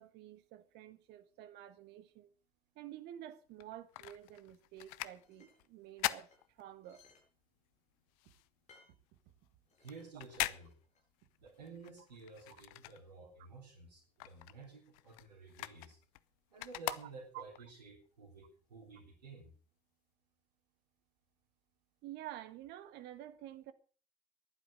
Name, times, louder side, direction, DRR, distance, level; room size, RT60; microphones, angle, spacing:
voice 1, 0.0-2.3 2.7-7.0 16.9-17.4 22.0-23.7, right 12 dB, 55° right, 1.7 m, -50 dB
sound 1, 3.5-7.2 7.6-13.5 13.8-17.6 18.2-18.3, left 19 dB, 60° left, 0.8 m, -43 dB
sound 2, 5.2-5.6 6.3-7.3 7.6-7.7 8.7-9.0 9.7-10.1 10.6-11.0, left 4 dB, 35° left, 6.8 m, -65 dB
voice 2, 9.8-10.8 11.4-16.0 16.5-19.5, right 4 dB, 75° right, 3.6 m, -53 dB
15.0 x 11.5 x 6.5 m
figure-of-eight pair, 65°, 21 cm